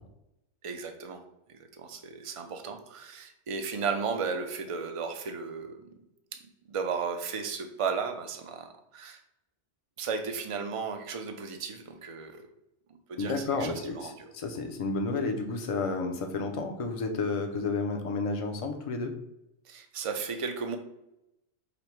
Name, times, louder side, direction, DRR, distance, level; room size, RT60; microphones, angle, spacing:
voice 1, 0.6-1.2 1.5-5.8 6.3-6.4 6.7-9.2 10.0-12.5 12.9-14.3 19.7-20.8, right 5 dB, 55° right, 6 dB, 0.3 m, -35 dB
voice 2, 13.2-19.2, left 3 dB, 45° left, 5 dB, 0.5 m, -31 dB
5.1 x 2.1 x 4.4 m, 0.87 s
omnidirectional pair, 1.2 m